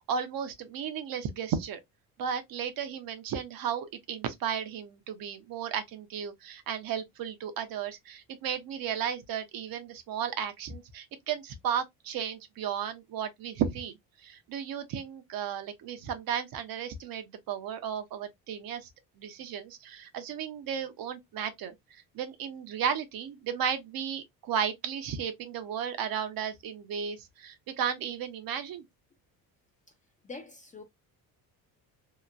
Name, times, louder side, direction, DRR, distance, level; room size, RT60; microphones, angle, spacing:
voice 1, 0.1-1.8 2.2-18.9 19.2-28.8, right 8 dB, 60° right, 0.7 m, -34 dB
voice 2, 30.2-30.8, left 3 dB, 20° left, 0.4 m, -44 dB
2.9 x 2.1 x 2.4 m
cardioid pair, 135°, 40 cm